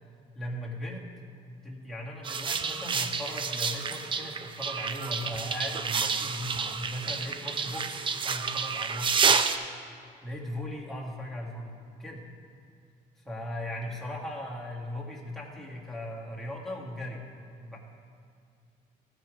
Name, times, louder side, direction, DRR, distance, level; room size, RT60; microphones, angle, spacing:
voice 1, 0.3-1.0 1.6-9.3 10.2-11.7 12.0-12.2 13.2-17.2 17.6-17.8, left 1 dB, ahead, -4 dB, 1.7 m, -38 dB
sound 1, 2.2-9.6, right 5 dB, 30° right, 0.5 m, -29 dB
14.5 x 5.0 x 4.7 m, 2.4 s
cardioid pair, 110°, 17 cm